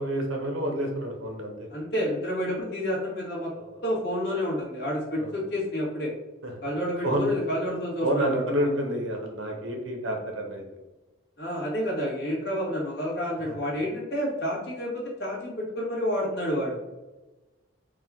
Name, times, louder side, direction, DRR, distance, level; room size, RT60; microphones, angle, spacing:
voice 1, 0.0-1.7 3.6-3.8 5.2-5.4 6.4-6.5 7.0-7.3 8.0-10.6 13.5-13.6, right 1 dB, 80° right, 3 dB, 0.9 m, -29 dB
voice 2, 1.7-3.5 3.8-6.1 6.6-8.7 11.4-16.8, equal, 55° left, -4 dB, 1.5 m, -29 dB
4.9 x 2.4 x 3.6 m, 1.1 s
head